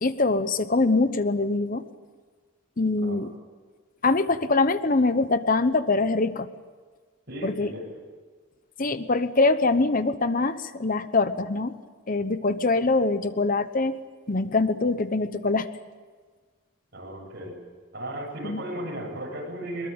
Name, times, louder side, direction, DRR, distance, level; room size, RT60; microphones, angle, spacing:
voice 1, 0.0-1.8 2.8-3.3 4.0-6.5 7.4-7.7 8.8-11.7 12.1-14.0 14.3-15.7 18.4-18.6, left 3 dB, 45° left, 12 dB, 0.9 m, -23 dB
voice 2, 2.9-3.3 7.3-8.0 16.9-17.6 17.9-19.9, right 1 dB, 55° right, 0 dB, 7.9 m, -35 dB
23.5 x 22.5 x 8.8 m, 1.5 s
head